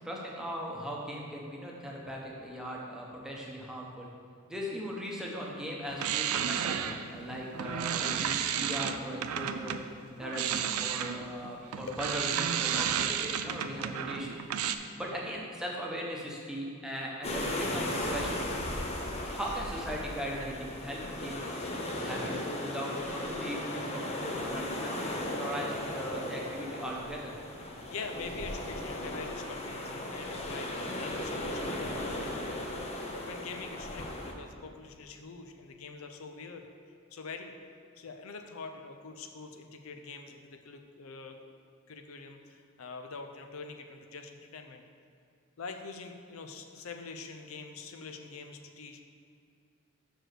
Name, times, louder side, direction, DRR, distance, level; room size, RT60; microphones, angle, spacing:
voice 1, 0.0-4.1 4.5-9.8 10.2-14.4 15.0-17.8 18.1-18.5 19.2-21.6 22.0-27.4, equal, 5° right, -3 dB, 0.9 m, -38 dB
sound 1, 5.9-9.8 10.2-14.7, right 9 dB, 85° right, 0.4 m, -32 dB
sound 2, 17.2-34.3, left 1 dB, 30° left, 0.7 m, -36 dB
voice 2, 27.9-36.7 37.1-37.5 38.0-41.4 41.9-44.8 45.6-49.0, left 4 dB, 70° left, 5 dB, 0.5 m, -45 dB
6.2 x 4.7 x 6.5 m, 2.4 s
head